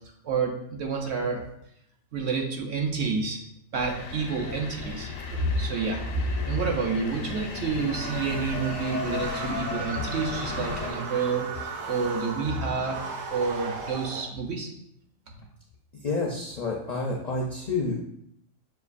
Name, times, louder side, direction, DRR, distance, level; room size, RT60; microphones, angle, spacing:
voice 1, 0.2-1.4 2.1-3.4 3.7-13.0 13.3-14.7 15.3-15.4, right 4 dB, 60° right, 1 dB, 0.9 m, -29 dB
sound 1, 3.7-10.9, left 5 dB, 90° left, 1.0 m, -35 dB
sound 2, 7.9-14.2, right 5 dB, 85° right, 1.0 m, -36 dB
voice 2, 16.0-18.0, left 3 dB, 60° left, -2 dB, 0.4 m, -29 dB
6.6 x 2.4 x 2.4 m, 0.74 s
omnidirectional pair, 1.3 m